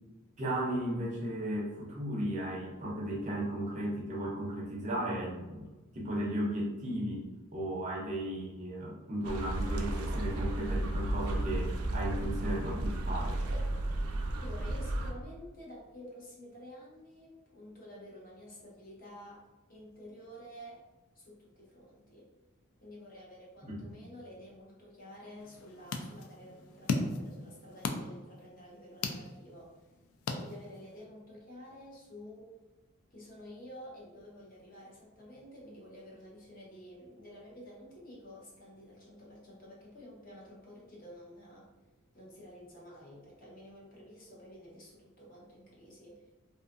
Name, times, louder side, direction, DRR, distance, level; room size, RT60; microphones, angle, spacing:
voice 1, 0.4-5.7 5.9-7.2 7.5-13.4 23.6-23.9, right 1 dB, 35° right, -3 dB, 0.5 m, -35 dB
sound 1, 9.2-15.1, right 1 dB, 90° right, 0.4 m, -33 dB
voice 2, 14.3-19.4 19.7-20.8 21.1-22.3 22.8-29.7 30.4-32.5 33.1-41.7 42.1-46.3, equal, 40° left, -5 dB, 0.7 m, -50 dB
sound 2, 25.4-31.0, left 3 dB, 75° left, 0.3 m, -38 dB
2.6 x 2.4 x 2.4 m, 1.2 s
head